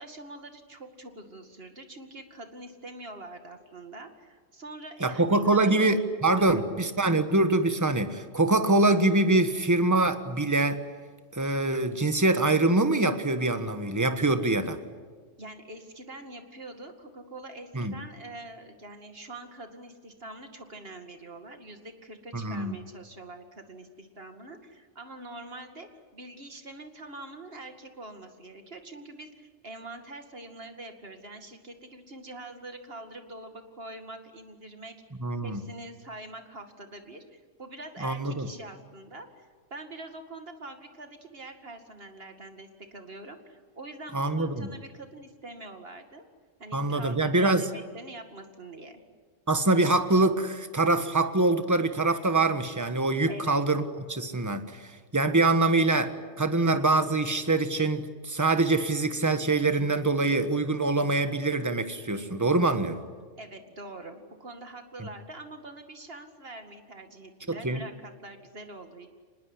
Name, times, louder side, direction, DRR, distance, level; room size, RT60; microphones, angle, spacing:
voice 1, 0.0-6.9 15.4-35.0 35.4-46.2 46.6-49.0 53.3-53.6 63.4-69.1, right 2 dB, 50° right, 6 dB, 2.4 m, -44 dB
voice 2, 5.0-10.8 11.3-14.8 17.7-17.9 22.3-22.8 35.2-35.6 38.0-38.5 44.1-44.7 46.7-47.7 49.5-53.8 54.1-63.0 65.0-65.1 67.5-67.8, right 2 dB, 15° right, 9 dB, 1.4 m, -24 dB
25.5 x 20.5 x 9.8 m, 1.5 s
omnidirectional pair, 1.3 m